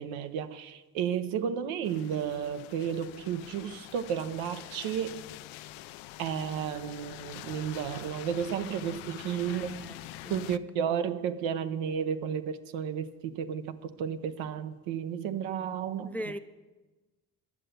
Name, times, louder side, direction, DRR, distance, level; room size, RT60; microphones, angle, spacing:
voice 1, 0.0-5.2 6.2-9.9 10.3-16.2, right 8 dB, 75° right, 10 dB, 0.9 m, -33 dB
sound 1, 1.8-10.6, left 16 dB, 75° left, 0.5 m, -45 dB
voice 2, 9.5-10.4 16.0-16.4, equal, 5° left, 11 dB, 0.4 m, -40 dB
11.0 x 6.6 x 7.9 m, 1.2 s
hypercardioid pair, 55°, 48 cm